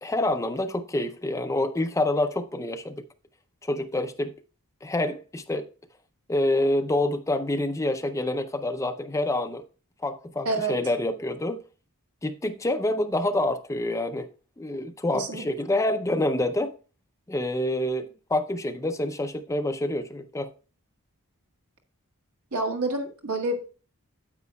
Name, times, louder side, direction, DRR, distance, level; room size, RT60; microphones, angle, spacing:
voice 1, 0.0-3.0 3.6-4.3 4.8-5.7 6.3-9.6 10.0-11.6 12.2-14.3 14.6-16.8 17.3-20.5, left 1 dB, 15° left, 0.5 m, -27 dB
voice 2, 15.1-15.4 22.5-23.6, right 2 dB, 75° right, 1.6 m, -28 dB
9.5 x 8.1 x 2.2 m
head